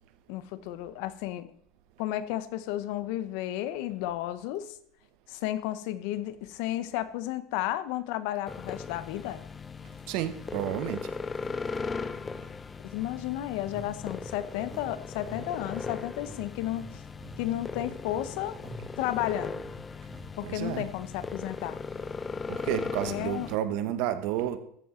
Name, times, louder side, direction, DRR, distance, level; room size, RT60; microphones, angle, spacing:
voice 1, 0.3-1.5 2.0-4.7 5.3-9.4 12.9-17.0 17.4-18.6 19.0-19.6 20.4-21.8 23.0-23.5, left 13 dB, 70° left, 0.8 m, -33 dB
sound 1, 8.5-23.6, left 4 dB, 20° left, 0.4 m, -38 dB
voice 2, 10.1-11.1 20.4-20.9 22.5-24.6, right 11 dB, 65° right, 1.0 m, -31 dB
sound 2, 13.7-14.9 15.2-15.4 15.7-19.8 20.1-20.3 20.6-20.8 21.1-21.4, right 1 dB, 10° right, 2.2 m, -47 dB
14.0 x 7.2 x 3.8 m
supercardioid pair, 135°, 0 cm